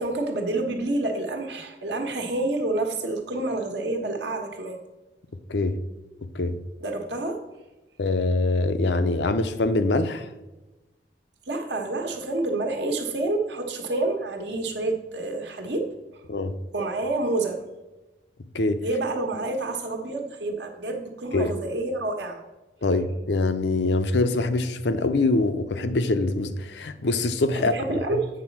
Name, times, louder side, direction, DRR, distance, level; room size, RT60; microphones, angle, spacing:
voice 1, 0.0-4.8 6.8-7.4 11.5-15.9 16.7-17.6 18.8-22.4 27.5-28.3, right 2 dB, 75° right, 3 dB, 1.3 m, -28 dB
voice 2, 8.0-10.3 16.3-16.5 18.5-18.8 21.3-21.5 22.8-28.2, left 2 dB, 75° left, 10 dB, 0.6 m, -24 dB
8.3 x 4.1 x 5.9 m, 1.1 s
head